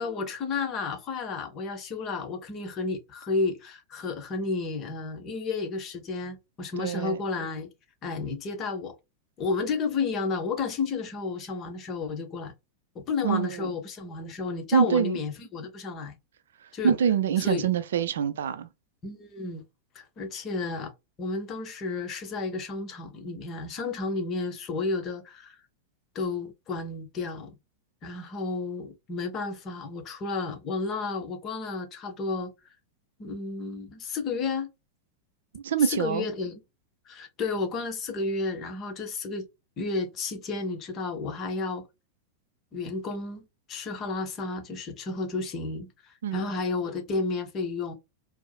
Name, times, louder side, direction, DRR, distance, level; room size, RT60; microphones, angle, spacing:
voice 1, 0.0-7.7 8.0-8.9 9.4-12.5 13.1-16.2 16.7-16.9 17.4-17.7 19.0-19.6 19.9-20.9 21.2-25.6 26.1-27.5 28.0-32.5 33.2-34.7 35.9-36.6 37.1-39.5 39.8-41.8 42.7-47.9, left 3 dB, 30° left, 0.9 m, -32 dB
voice 2, 6.8-7.2 13.2-13.7 14.7-15.2 16.8-18.7 35.5-36.3 46.2-46.5, right 7 dB, 60° right, 0.4 m, -25 dB
4.5 x 2.0 x 2.3 m
figure-of-eight pair, 90°, 0 cm